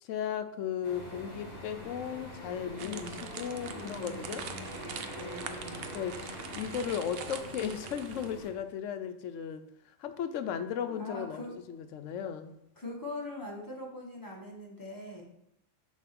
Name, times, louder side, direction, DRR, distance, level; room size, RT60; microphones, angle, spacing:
voice 1, 0.0-4.5 5.9-9.6 10.0-11.4 11.7-12.6, left 8 dB, 75° left, 10 dB, 0.9 m, -36 dB
sound 1, 0.8-8.5, equal, 45° left, 2.0 m, -44 dB
voice 2, 2.8-3.2 3.6-4.6 4.9-5.8 10.9-11.6 12.8-15.2, left 2 dB, 15° left, -2 dB, 1.4 m, -42 dB
sound 2, 2.8-8.5, right 7 dB, 60° right, 0.7 m, -44 dB
7.1 x 3.1 x 5.9 m, 0.79 s
omnidirectional pair, 1.3 m